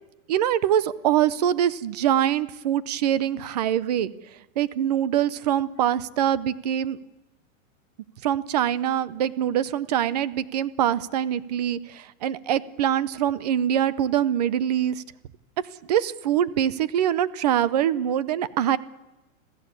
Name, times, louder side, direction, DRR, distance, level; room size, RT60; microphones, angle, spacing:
voice 1, 0.3-4.1 4.6-7.0 8.2-15.0 15.9-18.8, right 10 dB, 30° right, 19 dB, 0.7 m, -24 dB
26.5 x 15.5 x 8.3 m, 1.0 s
supercardioid pair, 180°, 40 cm